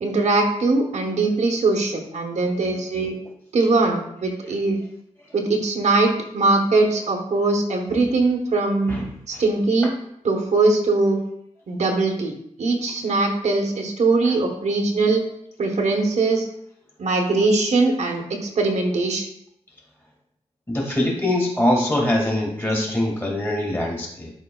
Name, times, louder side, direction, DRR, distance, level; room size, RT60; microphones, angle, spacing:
voice 1, 0.0-3.1 3.5-4.8 5.3-8.9 9.3-9.9 10.2-11.2 11.7-15.2 15.6-16.5 17.0-19.2, right 3 dB, 70° right, 2 dB, 1.0 m, -21 dB
voice 2, 20.7-24.3, left 1 dB, 20° left, -1 dB, 2.1 m, -23 dB
11.0 x 4.7 x 2.3 m, 0.75 s
wide cardioid pair, 110°, 12 cm